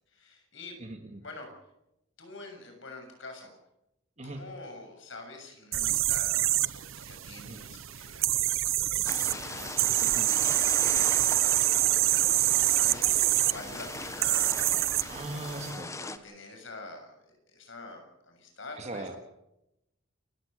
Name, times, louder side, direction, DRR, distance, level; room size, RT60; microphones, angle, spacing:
voice 1, 0.1-0.8 1.2-1.5 2.2-3.5 4.2-11.8 12.2-15.5 15.9-19.1, left 3 dB, 65° left, 4 dB, 7.1 m, -47 dB
voice 2, 0.8-1.2 4.2-4.4 7.4-7.6 10.0-10.3 15.1-16.0 18.8-19.1, right 2 dB, 35° right, 5 dB, 2.2 m, -39 dB
sound 1, 5.7-15.7, right 15 dB, 85° right, 0.7 m, -27 dB
sound 2, 9.0-16.2, left 3 dB, 15° left, 1.3 m, -39 dB
29.0 x 16.0 x 6.6 m, 0.87 s
head